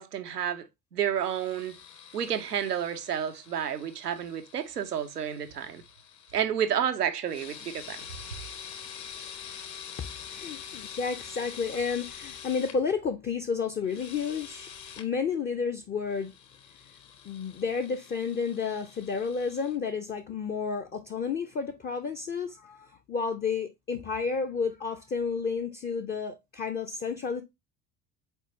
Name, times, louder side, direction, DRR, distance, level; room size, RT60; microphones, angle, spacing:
voice 1, 0.0-1.8 2.1-5.8 6.3-8.1, right 9 dB, 90° right, 0.6 m, -30 dB
sound 1, 1.2-6.5 7.2-12.8 13.8-15.1 16.1-19.8, left 8 dB, 40° left, 0.9 m, -46 dB
voice 2, 10.3-14.7 15.0-16.3 17.2-27.4, left 5 dB, 20° left, 0.5 m, -31 dB
4.4 x 4.2 x 2.7 m
figure-of-eight pair, 60°, 46 cm